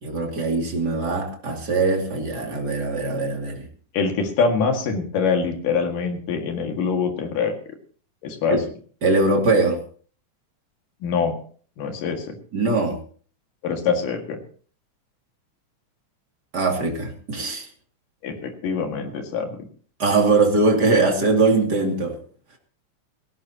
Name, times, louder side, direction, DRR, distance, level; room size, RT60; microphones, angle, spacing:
voice 1, 0.0-3.7 8.5-8.6 9.0-9.8 12.5-13.0 16.5-17.7 20.0-22.2, right 3 dB, 30° right, 1 dB, 2.8 m, -21 dB
voice 2, 3.9-7.5 8.2-8.6 11.0-11.4 11.8-12.4 13.6-14.4 18.2-19.6, left 5 dB, 80° left, 4 dB, 3.6 m, -24 dB
17.5 x 17.0 x 2.9 m, 0.43 s
omnidirectional pair, 3.8 m